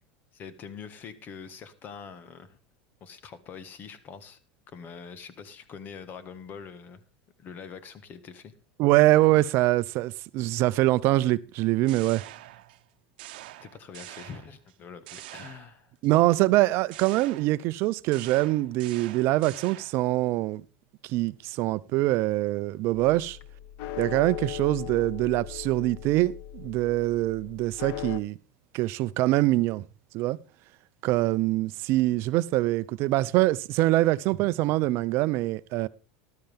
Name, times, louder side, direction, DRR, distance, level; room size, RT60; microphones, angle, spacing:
voice 1, 0.3-2.6 3.0-4.4 4.7-7.0 7.4-8.5 13.6-15.9, left 6 dB, 40° left, 1.5 m, -44 dB
voice 2, 8.8-12.2 16.0-20.6 21.0-23.4 24.0-28.4 28.7-29.8 30.1-30.4 31.0-35.9, right 17 dB, 55° right, 0.6 m, -24 dB
sound 1, 11.6-12.9 13.2-14.7 15.1-16.1 16.9-20.1, right 16 dB, 80° right, 0.9 m, -45 dB
sound 2, 22.9-28.2, left 12 dB, 60° left, 0.8 m, -39 dB
13.5 x 11.5 x 3.5 m
supercardioid pair, 120°, 5 cm